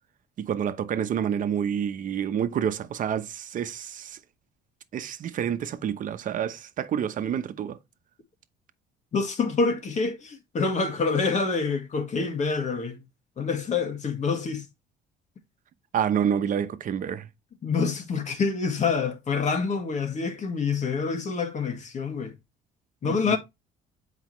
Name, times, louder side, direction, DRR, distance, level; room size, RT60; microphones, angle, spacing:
voice 1, 0.4-4.2 4.9-7.8 15.9-17.3 23.0-23.4, right 8 dB, 50° right, 0.9 m, -28 dB
voice 2, 9.1-13.0 13.4-14.7 17.6-22.3 23.0-23.4, left 4 dB, 45° left, 2.0 m, -27 dB
8.0 x 5.0 x 3.1 m
cardioid pair, 110°, 17 cm